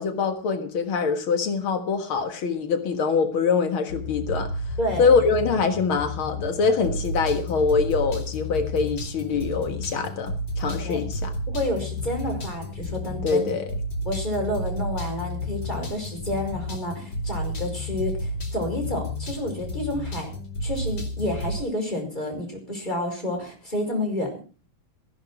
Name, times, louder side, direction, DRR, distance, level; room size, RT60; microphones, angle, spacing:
voice 1, 0.0-4.5 5.0-11.3 13.2-13.7, left 5 dB, 90° left, 8 dB, 2.4 m, -24 dB
sound 1, 3.9-21.6, left 1 dB, 65° left, 3.3 m, -32 dB
voice 2, 4.8-5.1 10.8-11.0 11.5-13.4 14.1-20.3 20.6-24.3, left 1 dB, 20° left, 2 dB, 5.4 m, -29 dB
15.5 x 11.0 x 5.9 m, 0.37 s
omnidirectional pair, 2.2 m